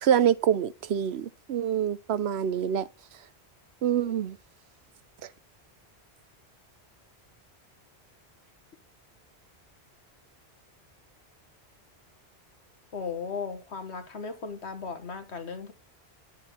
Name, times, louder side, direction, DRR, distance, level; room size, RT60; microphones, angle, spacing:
voice 1, 0.0-2.9 3.8-4.4, right 9 dB, 75° right, 0.9 m, -26 dB
voice 2, 12.9-15.7, left 5 dB, 80° left, 1.8 m, -36 dB
10.5 x 7.3 x 4.3 m
omnidirectional pair, 1.1 m